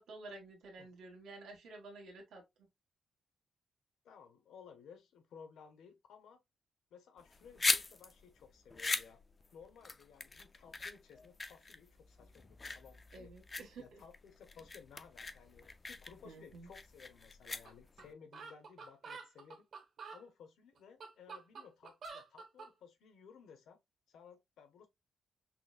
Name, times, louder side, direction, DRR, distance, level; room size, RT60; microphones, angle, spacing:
voice 1, 0.0-2.7 13.1-14.0 16.2-16.7, right 3 dB, 80° right, 1.5 m, -51 dB
voice 2, 4.0-6.4 6.9-9.2 9.5-13.3 13.8-19.6 20.1-23.8 24.1-24.9, left 6 dB, 90° left, 0.9 m, -58 dB
sound 1, 7.2-18.1, left 3 dB, 25° left, 0.3 m, -40 dB
sound 2, 17.7-17.8 18.0-18.1 18.3-20.2 20.8-22.7, right 4 dB, 55° right, 1.1 m, -48 dB
5.8 x 2.2 x 2.3 m
wide cardioid pair, 155°, 0 cm